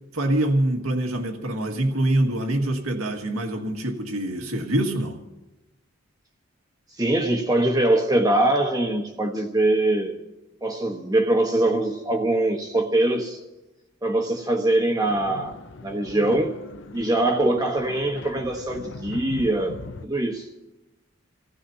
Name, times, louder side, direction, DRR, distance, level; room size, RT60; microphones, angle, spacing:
voice 1, 0.1-5.2, right 1 dB, 90° right, 2.0 m, -25 dB
voice 2, 7.0-10.2 10.6-13.4 14.0-16.5 16.9-19.8 20.0-20.5, right 1 dB, 15° right, 1.2 m, -23 dB
sound 1, 15.0-20.1, left 3 dB, 60° left, 0.6 m, -39 dB
29.5 x 16.0 x 2.8 m
head